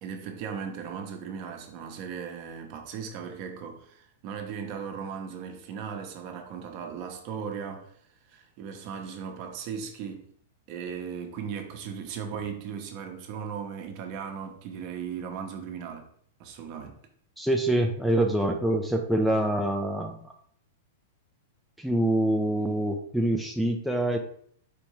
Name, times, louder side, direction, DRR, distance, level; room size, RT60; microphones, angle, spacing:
voice 1, 0.0-7.9 8.3-10.3 10.7-16.0 16.4-16.9, right 7 dB, 45° right, 0.7 m, -37 dB
voice 2, 17.4-20.2 21.8-24.2, right 1 dB, ahead, 0.3 m, -25 dB
4.4 x 2.6 x 3.0 m
hypercardioid pair, 130°, 0 cm